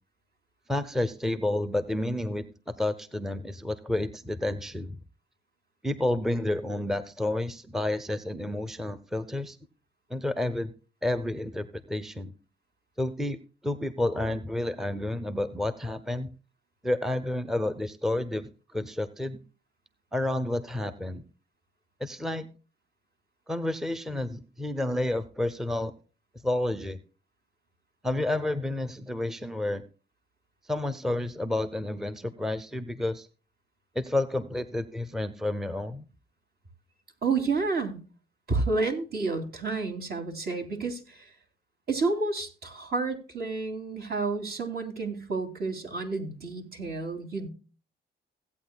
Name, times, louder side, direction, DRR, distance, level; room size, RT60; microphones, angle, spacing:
voice 1, 0.7-5.0 5.8-9.6 10.1-10.7 11.0-12.3 13.0-13.4 13.6-16.3 16.8-19.4 20.1-21.2 22.0-22.5 23.5-25.9 26.4-27.0 28.0-29.8 30.6-33.3 34.0-36.1, left 1 dB, ahead, 12 dB, 0.7 m, -30 dB
voice 2, 37.2-38.0 38.5-41.3 41.9-47.5, right 3 dB, 55° right, 4 dB, 2.9 m, -30 dB
16.5 x 8.8 x 2.2 m, 0.35 s
cardioid pair, 90°, 20 cm